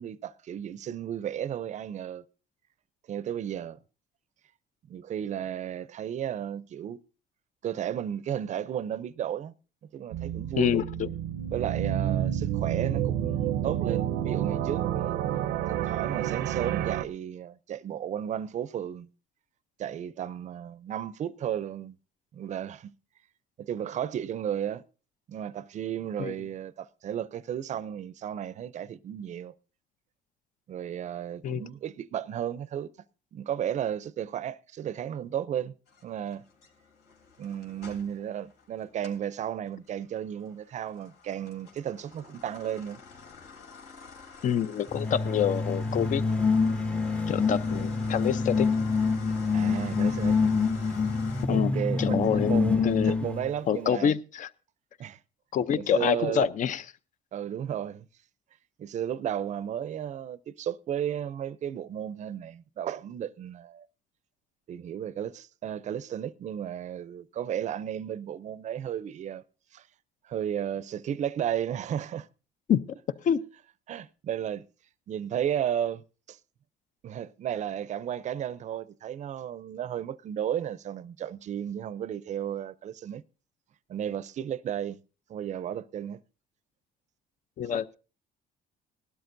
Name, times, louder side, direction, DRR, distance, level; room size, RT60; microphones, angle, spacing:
voice 1, 0.0-2.2 3.1-3.8 4.9-7.0 7.6-9.5 9.9-10.8 11.5-15.2 15.7-19.1 19.8-22.0 22.3-22.9 23.6-24.8 25.3-29.5 30.7-32.9 33.3-35.7 36.0-36.4 37.4-43.0 49.5-50.4 51.5-54.1 55.0-55.2 55.8-56.5 57.3-58.0 58.8-63.9 64.7-69.4 69.7-69.9 70.3-72.3 73.9-74.7 75.1-76.0 76.3-76.4 77.0-83.2 83.9-85.0 85.3-86.2, right 10 dB, 45° right, 0.5 m, -34 dB
sound 1, 10.1-17.0, right 11 dB, 90° right, 0.6 m, -29 dB
voice 2, 10.6-11.1 26.2-26.3 31.4-31.6 44.4-46.2 47.3-48.7 51.5-53.2 53.7-54.5 55.5-56.8 72.7-72.8 73.2-73.4 87.6-88.0, left 8 dB, 50° left, 0.6 m, -27 dB
sound 2, 35.9-39.3 39.7-51.5, left 5 dB, 80° left, 3.3 m, -48 dB
sound 3, 44.9-53.5, left 4 dB, 5° left, 0.6 m, -26 dB
19.0 x 12.5 x 2.6 m
cardioid pair, 110°, 17 cm